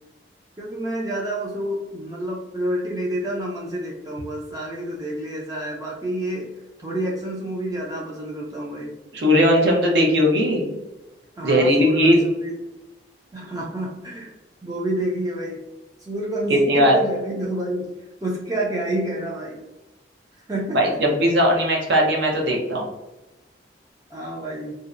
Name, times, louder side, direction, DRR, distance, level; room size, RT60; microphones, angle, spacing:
voice 1, 0.6-6.5 6.8-8.9 11.4-12.5 13.3-14.3 14.6-15.6 16.0-17.9 18.2-19.6 20.4-21.0 24.1-24.8, right 1 dB, 20° right, -3 dB, 0.3 m, -29 dB
voice 2, 9.1-10.8 11.4-12.2 16.5-16.9 20.7-22.9, equal, 70° right, 0 dB, 0.6 m, -18 dB
2.6 x 2.0 x 2.4 m, 1.1 s
head